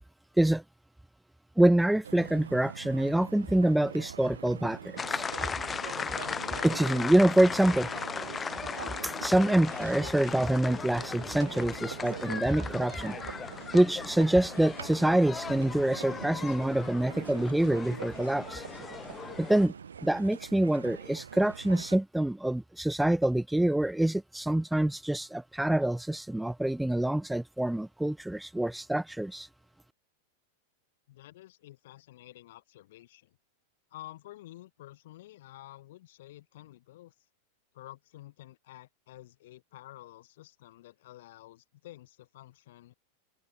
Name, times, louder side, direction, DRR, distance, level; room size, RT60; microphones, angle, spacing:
voice 1, 1.6-5.3 6.6-7.9 9.0-13.2 13.7-18.6 19.4-19.7 20.0-29.5, right 1 dB, 5° right, 0.3 m, -26 dB
sound 1, 2.0-22.0, right 7 dB, 70° right, 1.5 m, -44 dB
sound 2, 5.0-19.7, left 5 dB, 15° left, 0.7 m, -38 dB
voice 2, 31.1-33.4 33.9-37.1 37.7-42.9, left 15 dB, 55° left, 2.9 m, -50 dB
figure-of-eight pair, 90°, 0 cm